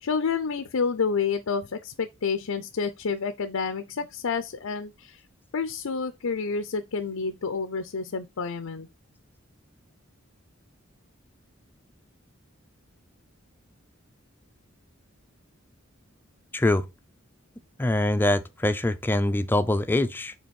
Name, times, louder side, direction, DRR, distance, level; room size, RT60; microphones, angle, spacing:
voice 1, 0.0-5.2 5.5-8.9, left 5 dB, 80° left, 0.6 m, -29 dB
voice 2, 16.5-16.8 17.8-20.3, left 1 dB, 10° left, 0.5 m, -24 dB
5.2 x 3.9 x 5.2 m
head